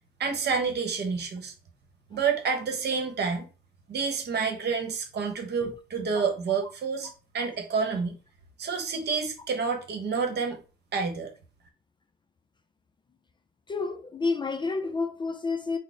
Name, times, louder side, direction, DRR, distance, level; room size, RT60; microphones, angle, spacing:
voice 1, 0.2-1.5 2.1-3.5 3.9-8.2 8.6-10.6 10.9-11.3, right 5 dB, 55° right, 1.0 m, -29 dB
voice 2, 13.7-15.8, left 4 dB, 25° left, 0.4 m, -29 dB
4.0 x 2.1 x 3.8 m
cardioid pair, 90°, 20 cm